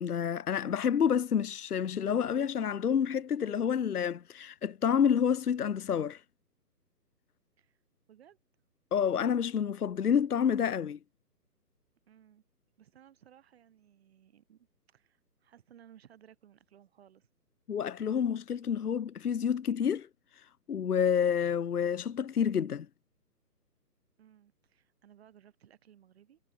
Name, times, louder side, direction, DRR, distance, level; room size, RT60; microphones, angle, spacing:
voice 1, 0.0-6.2 8.9-11.0 17.7-20.1 20.7-22.9, left 8 dB, 65° left, 0.8 m, -28 dB
voice 2, 12.1-12.4 12.8-17.3 24.2-26.4, right 10 dB, 40° right, 7.8 m, -59 dB
figure-of-eight pair, 145°, 49 cm